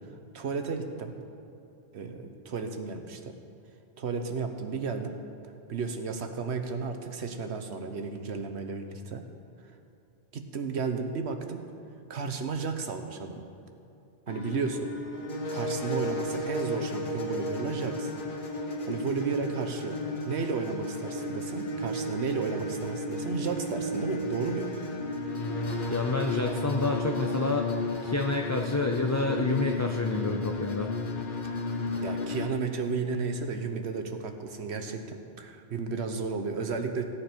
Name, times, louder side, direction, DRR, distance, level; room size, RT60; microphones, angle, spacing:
voice 1, 0.3-1.1 1.9-3.4 4.0-5.2 5.7-9.3 10.3-11.7 12.1-13.5 14.3-15.0 15.5-18.1 18.9-20.0 20.3-24.7 31.4-31.6 32.0-37.0, right 4 dB, 80° right, 6 dB, 1.2 m, -33 dB
sound 1, 14.3-32.5, left 1 dB, 50° left, 1.1 m, -33 dB
voice 2, 25.9-30.9, left 3 dB, 25° left, 2 dB, 0.4 m, -29 dB
16.0 x 9.9 x 4.5 m, 2.7 s
omnidirectional pair, 1.1 m